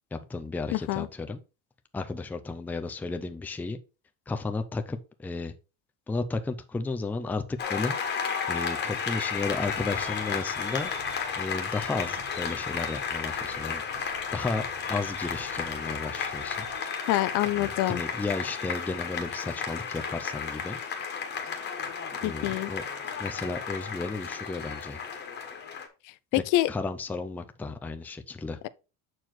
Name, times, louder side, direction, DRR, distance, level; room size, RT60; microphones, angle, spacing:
voice 1, 0.1-1.4 1.9-3.8 4.3-5.5 6.1-7.9 8.5-10.9 11.4-16.7 17.6-20.8 22.2-22.8 23.2-25.0 26.3-28.6, left 3 dB, 5° left, 0.5 m, -33 dB
voice 2, 0.7-1.1 17.1-18.0 22.2-22.7 26.5-26.7, left 15 dB, 60° left, 0.6 m, -26 dB
Applause, 7.6-25.9, left 6 dB, 30° left, 1.5 m, -33 dB
sound 1, 9.3-16.8, right 6 dB, 50° right, 1.3 m, -52 dB
7.6 x 4.6 x 4.4 m
cardioid pair, 165°, 36 cm